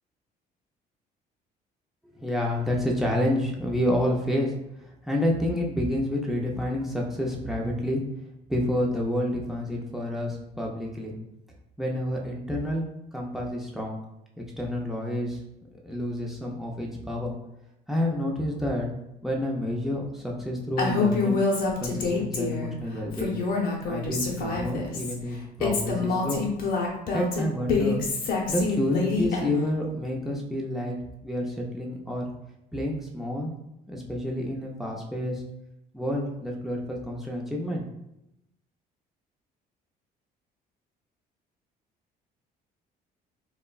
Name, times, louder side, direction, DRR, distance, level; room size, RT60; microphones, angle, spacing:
voice 1, 2.1-4.5 4.8-8.0 8.5-11.1 11.8-12.9 13.1-14.0 14.4-15.4 15.8-17.3 17.9-18.9 19.2-21.4 21.8-23.4 23.9-26.4 27.1-28.1 28.5-31.0 31.2-32.3 32.7-33.5 33.9-35.4 35.9-37.8, left 1 dB, ahead, -1 dB, 0.5 m, -29 dB
Female speech woman speaking, 20.8-22.7 23.1-25.1 25.6-29.7, left 4 dB, 60° left, 0.7 m, -27 dB
2.9 x 2.2 x 2.3 m, 0.85 s
cardioid pair, 110°, 17 cm